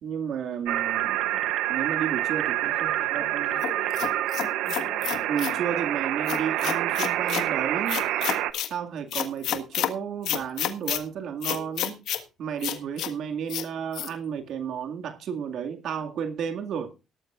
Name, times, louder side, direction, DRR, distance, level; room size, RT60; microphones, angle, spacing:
voice 1, 0.0-1.2 1.7-3.5 5.3-8.0 8.7-12.0 12.4-16.9, right 7 dB, 65° right, 2.2 m, -32 dB
sound 1, 0.7-8.5, right 14 dB, 85° right, 0.9 m, -27 dB
voice 2, 2.7-5.1, left 5 dB, 40° left, 4.6 m, -45 dB
sound 2, 3.6-5.6 6.3-7.5 7.9-8.7 9.1-9.9 10.2-11.0 11.4-12.2 12.6-13.1 13.5-13.7 13.9-14.1, left 11 dB, 75° left, 1.5 m, -30 dB
17.5 x 12.5 x 2.5 m
cardioid pair, 110°, 0 cm